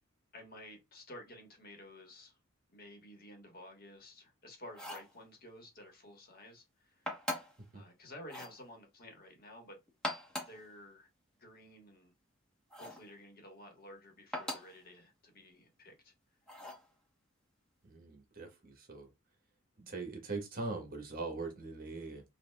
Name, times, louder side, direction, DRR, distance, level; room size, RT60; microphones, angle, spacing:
voice 1, 0.3-2.4 2.7-7.1 7.7-9.8 10.5-11.1 11.4-12.1 12.8-16.1, left 1 dB, 50° left, 1.4 m, -53 dB
sound 1, 4.7-5.1 7.1-7.6 8.2-8.6 9.9-10.6 12.7-13.1 14.3-14.8 16.5-16.9, left 1 dB, 5° left, 1.1 m, -40 dB
voice 2, 17.8-19.1 19.8-22.2, right 3 dB, 45° right, 1.1 m, -41 dB
5.6 x 2.5 x 2.3 m
head